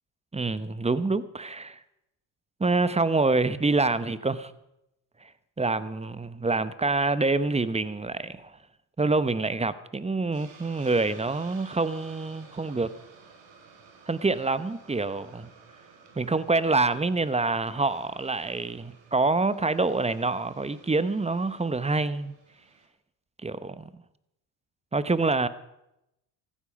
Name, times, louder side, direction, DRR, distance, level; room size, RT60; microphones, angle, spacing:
voice 1, 0.3-1.8 2.6-4.5 5.6-8.5 9.0-12.9 14.1-15.5 16.2-22.3 23.4-23.9 24.9-25.5, right 3 dB, 15° right, 0.8 m, -26 dB
Hiss, 10.3-22.9, right 5 dB, 60° right, 3.8 m, -53 dB
15.5 x 12.5 x 5.2 m
supercardioid pair, 75°, 50 cm